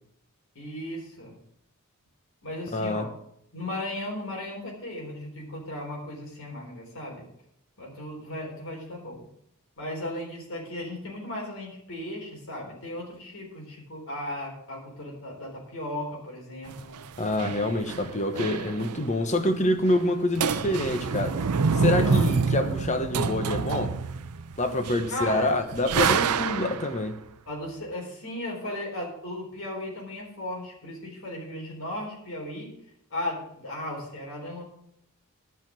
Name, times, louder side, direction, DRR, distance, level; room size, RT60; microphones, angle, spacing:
voice 1, 0.6-1.3 2.4-3.1 3.5-7.2 7.8-9.3 9.8-17.0 22.0-22.3 25.1-25.5 27.5-32.7 33.1-34.6, left 1 dB, 60° left, 4.0 m, -36 dB
voice 2, 2.7-3.1 17.2-21.4 21.7-24.0 24.6-27.2, left 1 dB, 30° left, 1.1 m, -26 dB
sound 1, 16.7-19.2 19.4-19.5 19.8-20.1 20.4-27.0, right 5 dB, 90° right, 0.6 m, -27 dB
10.5 x 5.9 x 7.4 m
head